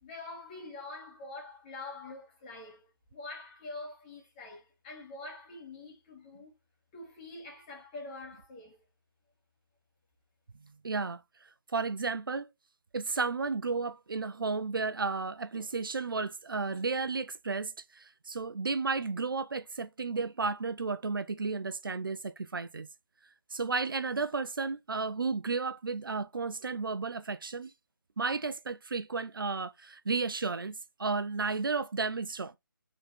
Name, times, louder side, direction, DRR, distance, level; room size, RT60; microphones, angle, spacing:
voice 1, 0.0-6.5 6.9-8.8, left 2 dB, 20° left, 2.7 m, -45 dB
voice 2, 10.8-11.2 11.7-12.5 12.9-22.9 23.5-27.7 28.2-32.5, right 4 dB, 70° right, 0.8 m, -33 dB
5.5 x 4.1 x 4.4 m
figure-of-eight pair, 155°, 12 cm